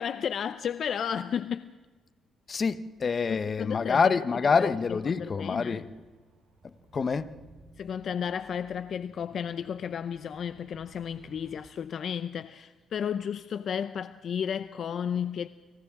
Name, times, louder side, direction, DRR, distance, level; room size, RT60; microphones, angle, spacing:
voice 1, 0.0-1.7 3.3-4.2 4.6-4.7 5.1-5.8 7.8-15.5, left 8 dB, 60° left, 0.6 m, -33 dB
voice 2, 2.5-5.9 6.6-7.4, left 5 dB, 40° left, 1.1 m, -27 dB
sound 1, 4.1-11.6, right 3 dB, 70° right, 6.5 m, -58 dB
30.0 x 25.5 x 3.8 m
cardioid pair, 90°, 0 cm